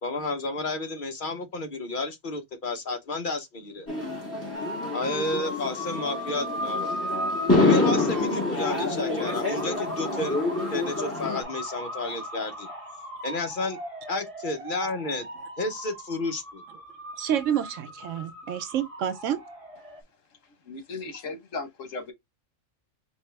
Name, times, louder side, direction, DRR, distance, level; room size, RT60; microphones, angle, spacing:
voice 1, 0.0-3.9 4.9-7.0 7.6-10.4 10.7-12.7 13.2-13.8 14.1-15.3 15.6-16.6, left 2 dB, 45° left, 0.9 m, -31 dB
sound 1, 3.9-11.4, left 2 dB, 10° left, 1.9 m, -27 dB
sound 2, 4.5-20.0, equal, 25° right, 1.5 m, -37 dB
voice 2, 17.2-19.4, right 9 dB, 75° right, 1.0 m, -28 dB
voice 3, 20.6-22.1, left 3 dB, 80° left, 1.5 m, -36 dB
4.4 x 2.9 x 3.3 m
omnidirectional pair, 1.3 m